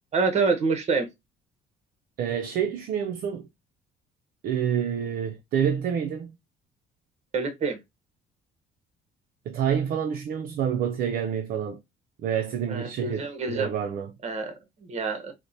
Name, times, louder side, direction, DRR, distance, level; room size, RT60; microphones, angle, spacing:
voice 1, 0.1-1.1 7.3-7.8 12.7-13.7 14.2-15.3, right 4 dB, 40° right, 0.9 m, -27 dB
voice 2, 2.2-3.5 4.4-6.4 9.5-11.8 12.2-14.1, right 8 dB, 60° right, 0.4 m, -28 dB
4.3 x 2.1 x 2.6 m
cardioid pair, 110°, 17 cm